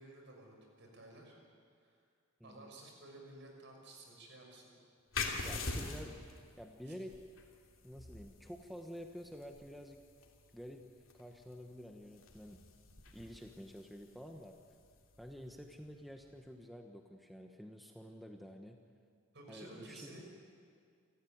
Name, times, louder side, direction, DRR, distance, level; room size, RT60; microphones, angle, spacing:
voice 1, 0.0-1.3 1.8-2.0 2.4-4.8 5.1-5.8 6.9-7.0 19.3-20.2, right 2 dB, 55° right, 1 dB, 6.1 m, -54 dB
voice 2, 2.4-2.7 5.4-6.2 6.6-7.2 7.8-10.0 10.5-10.9 11.1-12.6 13.1-14.6 15.2-18.8 19.5-20.2, equal, ahead, 3 dB, 1.1 m, -49 dB
sound 1, 5.1-16.4, left 4 dB, 65° left, 3.1 m, -46 dB
28.5 x 14.5 x 9.3 m, 2.2 s
head